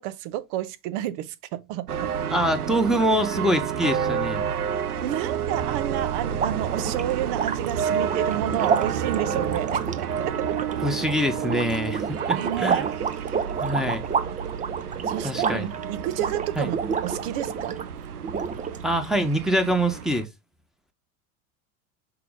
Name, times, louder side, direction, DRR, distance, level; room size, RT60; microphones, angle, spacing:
voice 1, 0.0-2.1 5.0-10.6 12.3-12.9 15.1-16.8 17.0-17.8, right 12 dB, 50° right, 1.0 m, -30 dB
sound 1, 1.9-20.2, right 8 dB, 85° right, 0.6 m, -30 dB
voice 2, 2.3-4.5 10.8-12.8 13.6-14.0 15.2-15.7 16.6-16.7 18.8-20.3, equal, ahead, 1.3 m, -24 dB
sound 2, 6.3-17.9 18.2-19.1, right 6 dB, 15° right, 0.7 m, -30 dB
5.9 x 4.7 x 3.7 m
figure-of-eight pair, 80°, 44 cm